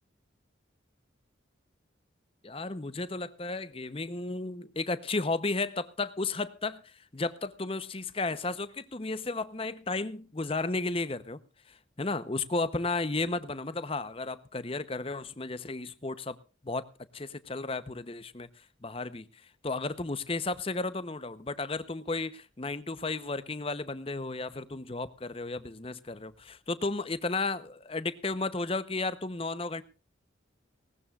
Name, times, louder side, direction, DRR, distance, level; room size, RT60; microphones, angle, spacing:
voice 1, 2.4-11.4 11.7-16.4 16.6-16.9 17.1-18.5 18.8-29.8, left 3 dB, 30° left, 0.8 m, -33 dB
19.0 x 18.5 x 2.4 m
head